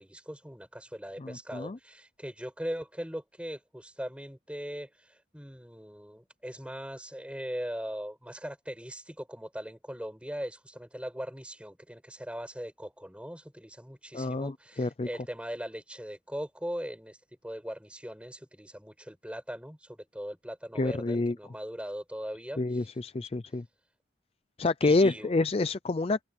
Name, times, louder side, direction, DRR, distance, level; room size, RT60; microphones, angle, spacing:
voice 1, 0.0-17.2 17.4-22.9 24.8-25.3, equal, 5° right, 7.7 m, -40 dB
voice 2, 1.2-1.8 14.1-15.1 20.7-21.4 22.6-23.6 24.6-26.2, left 3 dB, 30° left, 0.4 m, -28 dB
head